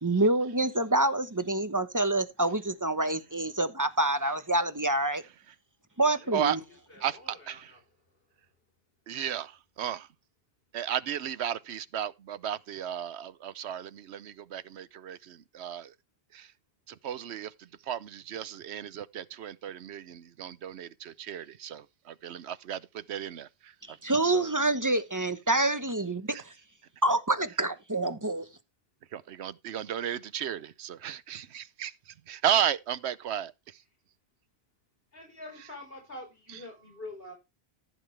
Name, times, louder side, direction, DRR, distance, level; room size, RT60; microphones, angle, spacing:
voice 1, 0.0-5.2 6.0-6.6 24.0-26.5 27.0-28.4, right 2 dB, 20° right, 1.1 m, -27 dB
voice 2, 6.2-6.6 6.9-7.8 35.1-37.3, left 2 dB, 65° left, 4.8 m, -46 dB
voice 3, 7.0-7.7 9.1-10.1 10.7-15.9 16.3-16.5 16.9-24.0 24.2-24.5 26.3-26.4 29.1-33.8, right 10 dB, 85° right, 1.0 m, -34 dB
14.5 x 7.5 x 3.3 m
omnidirectional pair, 1.1 m